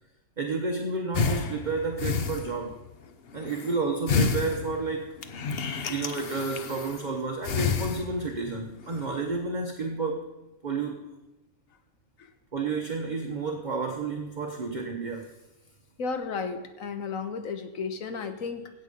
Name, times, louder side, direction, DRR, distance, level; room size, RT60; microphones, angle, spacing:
voice 1, 0.4-2.7 3.3-5.1 5.9-10.2 10.6-11.0 12.5-15.3, right 4 dB, 35° right, 2 dB, 1.1 m, -31 dB
sound 1, 1.1-2.9 3.3-3.8 4.1-7.1 7.4-8.5 8.8-9.2, left 5 dB, 50° left, 0.9 m, -30 dB
voice 2, 16.0-18.7, left 5 dB, 65° left, 8 dB, 1.5 m, -33 dB
16.5 x 6.7 x 5.3 m, 1.1 s
omnidirectional pair, 1.5 m